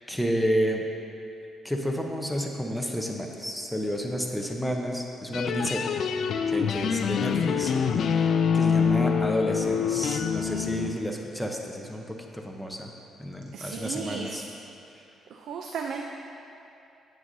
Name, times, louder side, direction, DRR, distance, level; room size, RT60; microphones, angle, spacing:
voice 1, 0.1-0.8 1.6-5.9 6.5-7.7 8.0-12.9 13.2-14.4, equal, ahead, 1 dB, 0.8 m, -31 dB
sound 1, 5.3-10.9, left 6 dB, 65° left, 0.3 m, -25 dB
voice 2, 13.5-14.4 15.3-16.1, right 5 dB, 75° right, 2 dB, 0.5 m, -34 dB
9.3 x 8.1 x 2.7 m, 2.8 s
cardioid pair, 90°, 0 cm